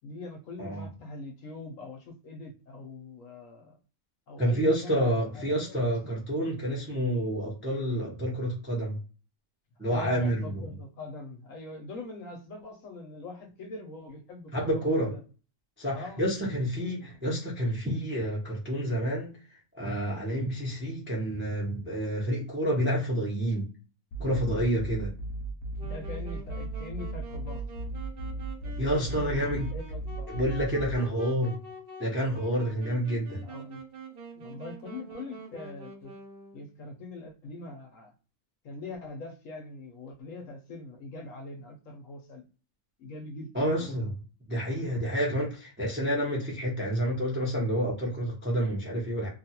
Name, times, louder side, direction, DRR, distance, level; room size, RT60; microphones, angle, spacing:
voice 1, 0.0-3.8 4.3-6.1 9.9-15.2 15.9-16.2 16.7-17.2 25.8-27.6 28.8-28.9 29.2-30.3 33.4-33.9 34.3-36.1 36.5-38.1 38.6-42.4 43.0-44.0, left 2 dB, 65° left, 0.9 m, -42 dB
voice 2, 4.4-9.0 9.8-10.4 14.5-15.1 15.8-23.7 24.2-25.1 28.8-29.7 30.3-31.6 32.0-33.4 43.5-44.2 44.5-49.3, equal, 15° right, 0.5 m, -29 dB
sound 1, 24.1-31.0, right 2 dB, 90° left, 0.5 m, -36 dB
Wind instrument woodwind instrument, 25.8-36.7, right 2 dB, 55° right, 0.6 m, -46 dB
2.7 x 2.3 x 2.7 m
omnidirectional pair, 1.7 m